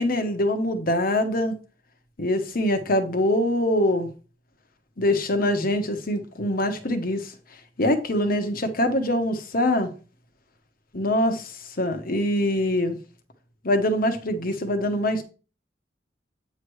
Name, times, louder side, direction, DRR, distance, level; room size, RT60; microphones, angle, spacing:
voice 1, 0.0-1.6 2.2-4.1 5.0-7.3 7.8-9.9 10.9-13.0 13.6-15.2, left 1 dB, 50° left, 1.2 m, -24 dB
8.8 x 3.2 x 6.2 m
head